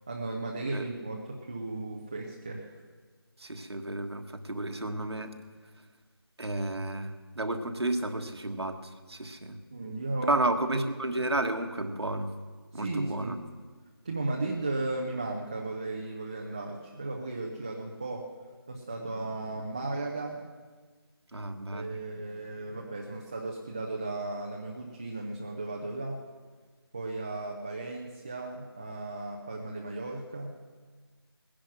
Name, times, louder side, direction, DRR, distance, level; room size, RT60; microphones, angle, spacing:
voice 1, 0.1-2.7 9.7-10.4 10.7-10.8 12.7-13.4 14.0-18.3 18.7-20.4 21.7-26.2 26.9-30.5, right 2 dB, 15° right, 0 dB, 0.5 m, -35 dB
voice 2, 3.4-5.3 6.4-9.6 10.3-12.3 12.7-13.4 21.3-21.9, right 2 dB, 80° right, 6 dB, 1.6 m, -32 dB
18.5 x 10.5 x 6.0 m, 1.4 s
figure-of-eight pair, 165°, 14 cm